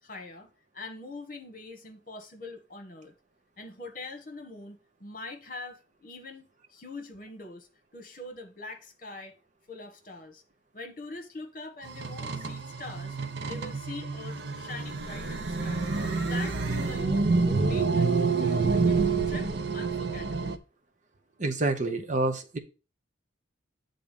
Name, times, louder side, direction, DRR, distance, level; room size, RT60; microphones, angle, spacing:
voice 1, 0.0-3.1 3.6-9.3 9.7-10.4 10.7-13.2 13.4-15.9 16.2-20.6, left 3 dB, 45° left, 1.4 m, -43 dB
sound 1, 11.8-20.6, right 4 dB, 65° right, 0.7 m, -28 dB
voice 2, 21.4-22.6, right 2 dB, 40° right, 0.8 m, -28 dB
8.4 x 3.8 x 5.2 m
head